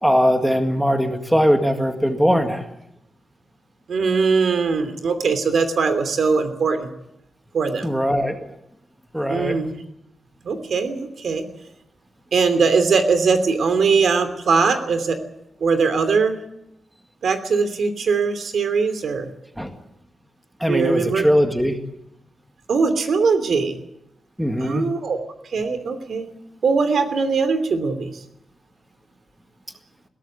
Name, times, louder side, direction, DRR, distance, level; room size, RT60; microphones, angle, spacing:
voice 1, 0.0-2.7 7.8-8.4 9.1-9.6 19.6-19.7 20.6-21.8 24.4-24.9, equal, 5° right, 5 dB, 1.9 m, -20 dB
voice 2, 3.9-6.9 7.5-7.9 9.3-9.7 10.4-11.4 12.3-15.2 15.6-16.4 17.2-19.3 20.7-21.2 22.7-23.8 24.6-25.2 25.5-26.3 26.6-28.2, right 5 dB, 70° right, 9 dB, 2.9 m, -20 dB
21.5 x 17.5 x 8.7 m, 0.81 s
wide cardioid pair, 165°, 0 cm